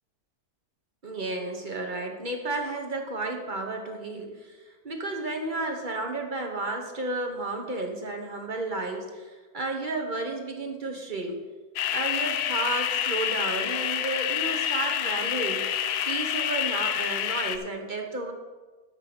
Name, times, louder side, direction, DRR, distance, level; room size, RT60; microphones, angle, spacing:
voice 1, 1.0-11.4 11.9-15.7 16.1-18.3, right 2 dB, 35° right, 3 dB, 1.2 m, -32 dB
sound 1, 11.8-17.6, left 10 dB, 85° left, 1.2 m, -28 dB
12.0 x 5.5 x 6.1 m, 1.3 s
omnidirectional pair, 1.7 m